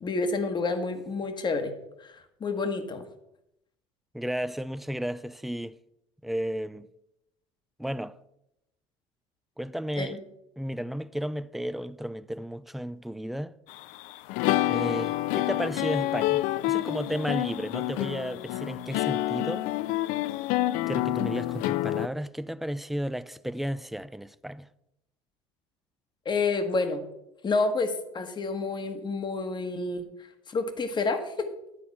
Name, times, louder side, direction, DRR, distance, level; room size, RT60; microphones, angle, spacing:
voice 1, 0.0-1.7 2.0-3.0 10.0-10.2 26.2-27.0 27.4-30.1 30.5-31.5, left 3 dB, 30° left, 1.4 m, -29 dB
voice 2, 4.1-5.8 6.2-6.9 7.8-8.2 9.6-10.2 10.6-13.5 14.7-19.7 20.9-24.7, equal, ahead, 0.4 m, -33 dB
sound 1, 13.7-22.1, left 15 dB, 70° left, 0.4 m, -28 dB
11.0 x 4.3 x 7.3 m
supercardioid pair, 85°, 14 cm